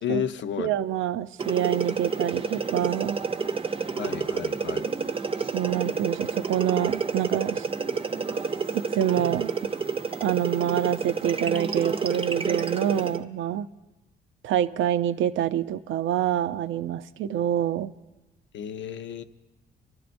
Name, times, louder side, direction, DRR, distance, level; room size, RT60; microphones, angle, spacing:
voice 1, 0.0-0.7 4.0-4.8 18.5-19.2, left 9 dB, 70° left, 10 dB, 0.7 m, -31 dB
voice 2, 0.6-3.2 5.5-7.7 8.7-9.5 10.2-13.7 14.4-17.9, right 11 dB, 80° right, 12 dB, 0.5 m, -26 dB
sound 1, 1.4-13.2, right 5 dB, 25° right, 0.6 m, -29 dB
28.5 x 12.5 x 2.6 m, 1.1 s
cardioid pair, 90°, 20 cm